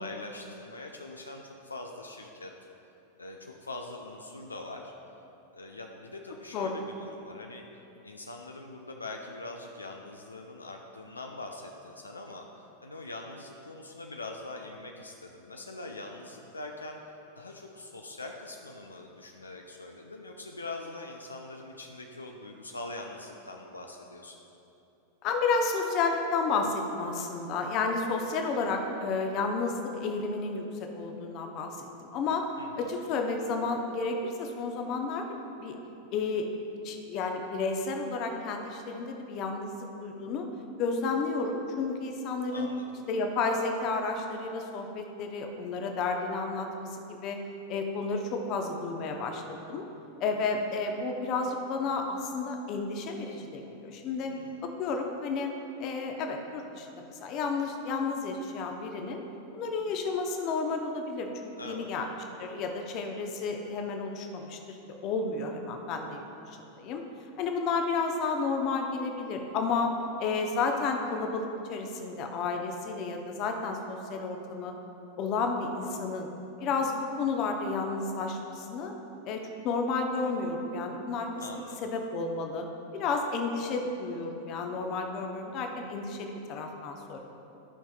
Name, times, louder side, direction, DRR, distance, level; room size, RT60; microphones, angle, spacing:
voice 1, 0.0-2.5 3.2-4.9 5.5-7.6 8.0-17.0 17.4-24.4 32.6-32.9 42.5-42.9 54.2-54.7 61.6-61.9 81.4-81.8, left 2 dB, 80° left, 2 dB, 0.5 m, -43 dB
voice 2, 25.2-32.4 32.8-35.8 36.1-36.5 36.8-40.5 40.8-42.7 43.1-47.4 47.7-49.8 50.2-54.3 54.6-55.5 55.8-59.2 59.5-62.1 62.4-64.8 65.0-67.0 67.4-69.9 70.2-74.7 75.2-76.3 76.6-78.9 79.3-82.6 82.9-87.2, left 4 dB, 40° left, 4 dB, 0.8 m, -31 dB
12.5 x 5.7 x 2.3 m, 2.9 s
figure-of-eight pair, 90°, 0 cm